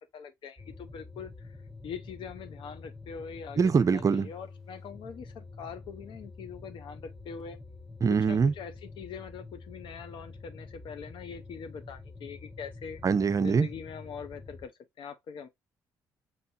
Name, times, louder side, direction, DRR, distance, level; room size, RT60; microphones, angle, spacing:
voice 1, 0.1-1.6 1.8-7.6 8.1-13.0 13.4-14.7 15.0-15.5, left 6 dB, 65° left, 0.8 m, -43 dB
sound 1, 0.6-14.7, left 3 dB, 5° left, 0.7 m, -47 dB
voice 2, 3.6-4.3 8.0-8.5 13.0-13.7, right 5 dB, 35° right, 0.5 m, -23 dB
5.4 x 2.9 x 2.7 m
hypercardioid pair, 55°, 9 cm